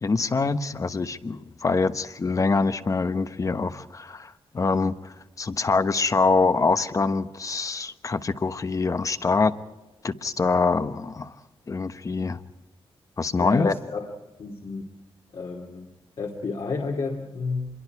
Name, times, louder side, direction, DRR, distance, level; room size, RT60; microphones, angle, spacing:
voice 1, 0.0-9.5 10.0-11.3 11.7-12.4 13.2-13.7, left 4 dB, 35° left, 11 dB, 1.1 m, -24 dB
voice 2, 13.4-14.1 14.4-14.8 15.3-15.9 16.2-17.7, left 3 dB, 60° left, 1 dB, 2.8 m, -31 dB
27.0 x 23.0 x 4.8 m, 1.1 s
wide cardioid pair, 135°, 10 cm